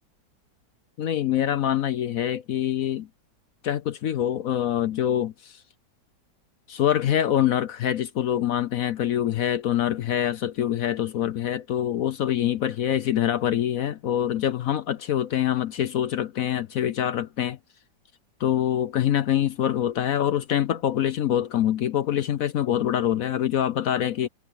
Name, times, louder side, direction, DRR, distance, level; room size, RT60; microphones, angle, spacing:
voice 1, 1.0-3.1 3.6-5.6 6.7-17.6 18.4-24.3, left 11 dB, 60° left, 1.0 m, -25 dB
omnidirectional pair, 1.9 m